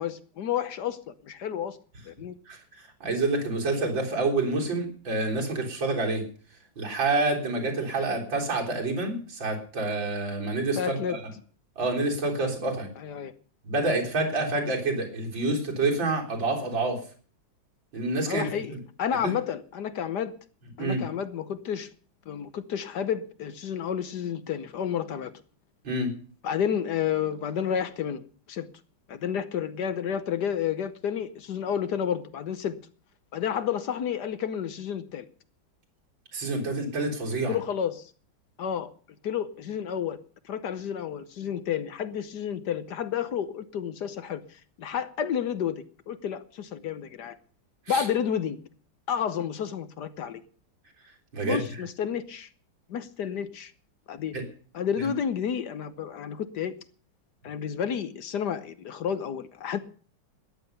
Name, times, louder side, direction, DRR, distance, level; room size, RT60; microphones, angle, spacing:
voice 1, 0.0-1.8 2.1-2.4 10.8-11.2 13.0-13.3 18.3-18.7 19.0-20.3 20.8-21.9 22.3-25.3 26.4-28.7 29.1-32.7 33.3-35.2 37.5-38.1 38.6-38.9 39.2-40.2 40.4-47.4 47.9-48.6 49.1-50.4 51.4-52.5 52.9-53.7 54.1-54.3 54.7-56.7 57.4-59.8, left 8 dB, 65° left, 13 dB, 1.4 m, -30 dB
voice 2, 2.5-6.2 6.8-11.2 11.8-12.9 13.6-17.0 17.9-18.8 19.2-19.3 20.8-21.0 25.8-26.1 36.3-37.6 47.9-48.1 51.3-51.6 54.3-54.5 55.0-55.1, right 2 dB, 75° right, -1 dB, 4.5 m, -28 dB
14.0 x 10.5 x 6.7 m, 0.42 s
omnidirectional pair, 2.1 m